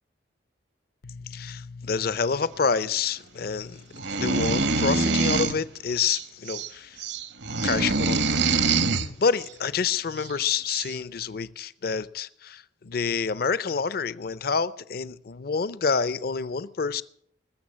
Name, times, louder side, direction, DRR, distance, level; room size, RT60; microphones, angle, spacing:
voice 1, 1.0-3.8 4.1-7.0 7.6-8.6 8.9-17.0, left 5 dB, 55° left, 0.5 m, -28 dB
sound 1, 3.9-5.6 6.0-6.7 7.0-9.1 10.2-10.3 10.7-10.9, right 3 dB, 70° right, 1.0 m, -25 dB
20.5 x 7.1 x 7.4 m
head